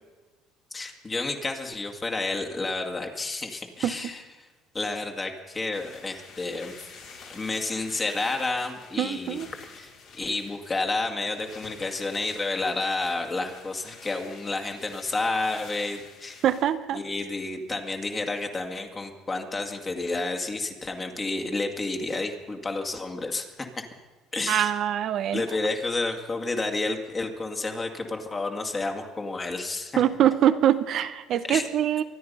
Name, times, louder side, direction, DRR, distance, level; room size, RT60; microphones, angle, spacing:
voice 1, 0.7-4.2 4.7-6.7 7.3-9.4 9.8-9.9 10.2-16.4 16.9-23.8 24.3-24.7 25.3-30.0 31.4-31.6, left 3 dB, 25° left, 3 dB, 2.1 m, -30 dB
sound 1, 5.7-16.6, left 5 dB, 65° left, 4.0 m, -48 dB
voice 2, 9.0-9.5 16.4-17.0 24.5-25.4 30.0-32.0, right 10 dB, 60° right, 12 dB, 0.8 m, -23 dB
24.5 x 9.6 x 5.5 m, 1.3 s
supercardioid pair, 80°, 0 cm